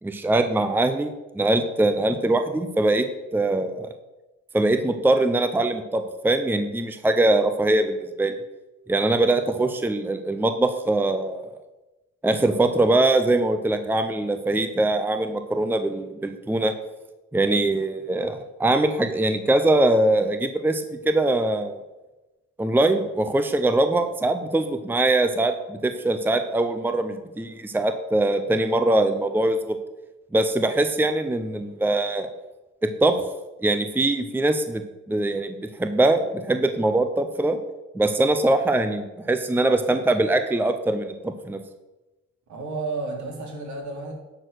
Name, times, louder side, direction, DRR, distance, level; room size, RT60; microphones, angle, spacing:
voice 1, 0.0-3.1 3.3-3.9 4.5-8.4 8.9-11.5 12.2-16.7 17.3-21.8 22.6-29.8 30.3-32.3 32.8-33.1 33.6-34.8 35.1-37.6 37.9-41.6, right 2 dB, 5° right, 8 dB, 0.7 m, -22 dB
voice 2, 42.5-44.1, right 3 dB, 70° right, 0 dB, 2.8 m, -32 dB
10.5 x 4.5 x 6.4 m, 1.1 s
cardioid pair, 90°, 30 cm